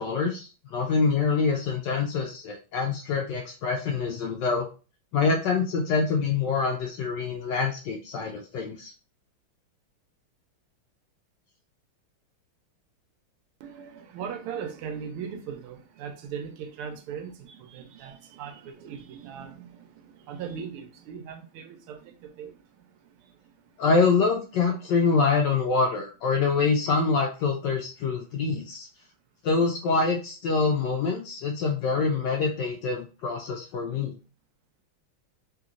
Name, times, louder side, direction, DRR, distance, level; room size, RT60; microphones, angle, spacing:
voice 1, 0.0-4.7 5.1-8.9 23.8-28.9 29.4-34.1, left 4 dB, 75° left, 1.0 m, -25 dB
voice 2, 13.6-23.7, right 7 dB, 85° right, 1.5 m, -39 dB
3.5 x 2.9 x 2.4 m
omnidirectional pair, 2.3 m